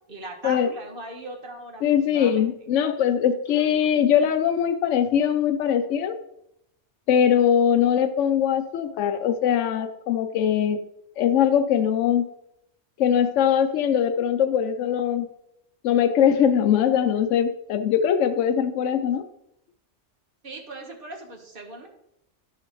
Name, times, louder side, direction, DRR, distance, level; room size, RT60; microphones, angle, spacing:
voice 1, 0.1-2.5 20.4-21.9, right 2 dB, 45° right, 2 dB, 1.5 m, -39 dB
voice 2, 1.8-6.2 7.1-10.8 11.2-12.2 13.0-15.3 15.8-19.2, left 8 dB, 80° left, 8 dB, 0.9 m, -21 dB
11.5 x 5.8 x 3.1 m, 0.78 s
omnidirectional pair, 1.3 m